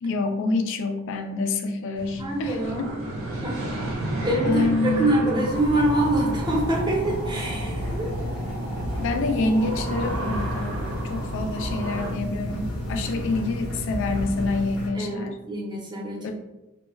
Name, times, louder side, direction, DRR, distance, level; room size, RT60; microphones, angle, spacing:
voice 1, 0.0-3.0 4.4-5.2 9.0-15.4 16.2-16.3, left 3 dB, 65° left, 6 dB, 0.3 m, -27 dB
sound 1, 2.0-12.1, right 1 dB, 70° right, 0.6 m, -32 dB
voice 2, 2.2-2.9 3.4-3.6 4.1-8.1 12.9-13.2 14.9-16.3, right 1 dB, 20° right, -2 dB, 0.6 m, -25 dB
sound 2, 5.5-14.9, left 1 dB, 90° left, 0.7 m, -31 dB
2.2 x 2.0 x 3.4 m, 0.99 s
head